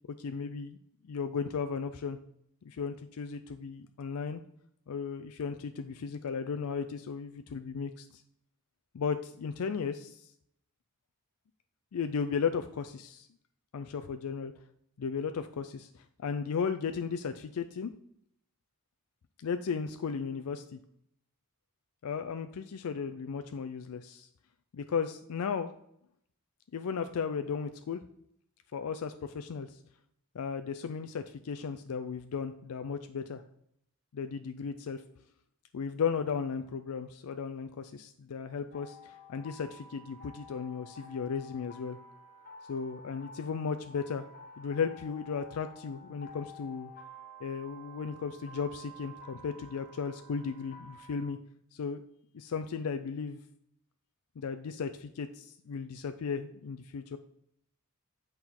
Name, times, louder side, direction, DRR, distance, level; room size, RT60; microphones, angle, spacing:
voice 1, 0.2-0.8 1.0-2.2 2.6-4.4 4.9-8.2 8.9-10.2 11.9-13.3 13.7-14.5 15.0-17.9 19.4-20.8 22.0-24.3 24.7-25.7 26.7-28.0 28.7-29.7 30.3-33.4 34.1-35.0 35.7-42.0 42.7-44.3 44.6-46.9 47.4-51.4 51.7-52.0 52.3-53.4 54.4-57.2, left 6 dB, 70° left, 8 dB, 0.4 m, -35 dB
sound 1, 38.7-51.2, left 1 dB, 45° left, 1.2 m, -51 dB
7.8 x 4.4 x 3.7 m, 0.71 s
head